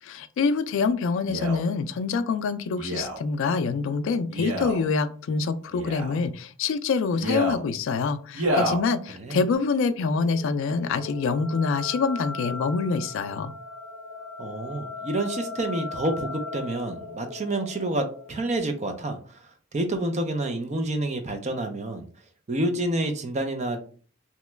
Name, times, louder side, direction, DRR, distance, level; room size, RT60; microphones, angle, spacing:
voice 1, 0.0-13.5, left 4 dB, 65° left, 10 dB, 0.3 m, -26 dB
Male speech man speaking, 1.2-1.6 2.8-3.2 4.3-4.8 5.7-6.2 7.1-7.6 8.3-8.8 9.5-9.6, equal, 75° right, 1.0 m, -28 dB
sound 1, 10.0-18.6, left 3 dB, 5° left, 0.9 m, -38 dB
voice 2, 14.4-19.4 19.7-22.0 22.5-23.8, right 1 dB, 35° right, 6 dB, 0.5 m, -28 dB
2.9 x 2.2 x 3.2 m, 0.42 s
head